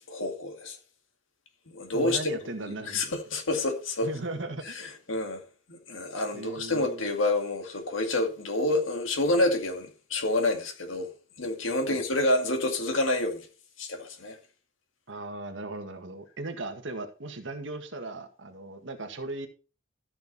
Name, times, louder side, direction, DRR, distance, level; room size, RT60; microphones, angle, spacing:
voice 1, 0.1-0.8 1.7-2.3 2.9-4.1 4.8-5.4 5.7-11.1 11.4-13.5 13.8-14.4, left 2 dB, 85° left, 2.1 m, -28 dB
voice 2, 1.9-3.0 4.0-4.8 6.3-7.0 11.9-12.0 15.1-19.5, right 2 dB, 70° right, 1.8 m, -37 dB
14.0 x 6.4 x 4.2 m
head